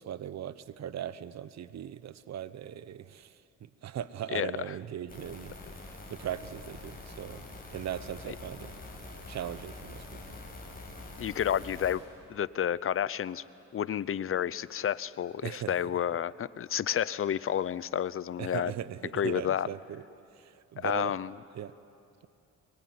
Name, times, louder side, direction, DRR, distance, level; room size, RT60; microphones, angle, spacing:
voice 1, 0.0-5.6 5.9-7.4 7.7-8.8 9.3-10.4 15.4-15.8 18.4-20.0 20.3-21.2 21.5-21.7, right 10 dB, 60° right, 15 dB, 1.0 m, -39 dB
sound 1, 5.1-11.9, left 2 dB, 30° left, 6.8 m, -45 dB
voice 2, 11.2-12.0 12.3-13.4 13.7-18.7 19.1-19.7 20.8-21.3, left 9 dB, 45° left, 19 dB, 0.7 m, -30 dB
23.5 x 23.0 x 9.5 m, 2.7 s
cardioid pair, 90°, 30 cm